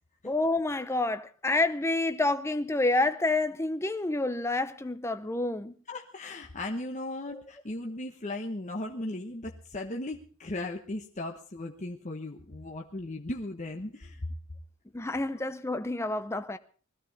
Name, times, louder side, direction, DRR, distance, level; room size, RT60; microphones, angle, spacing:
voice 1, 0.2-5.7 7.3-7.4 14.9-16.6, left 2 dB, 15° left, 0.7 m, -28 dB
voice 2, 5.9-14.3, left 2 dB, 35° left, 1.2 m, -37 dB
20.5 x 15.0 x 4.1 m
head